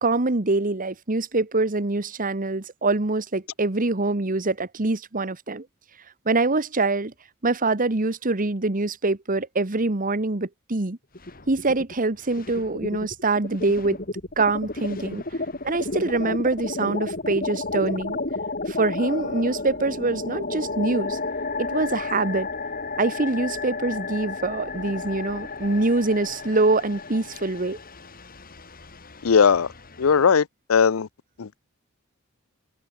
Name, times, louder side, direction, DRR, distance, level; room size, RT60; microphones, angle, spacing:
voice 1, 0.0-5.6 6.2-7.1 7.4-11.0 11.5-14.0 14.4-15.2 15.6-18.2 18.7-21.2 21.6-22.5 23.0-27.8, right 3 dB, 40° right, 1.3 m, -24 dB
sound 1, 11.1-11.9 12.2-30.3, left 3 dB, 45° left, 5.0 m, -32 dB
voice 2, 29.2-29.7 30.0-30.4 30.7-31.1 31.4-31.6, left 6 dB, 85° left, 0.6 m, -18 dB
head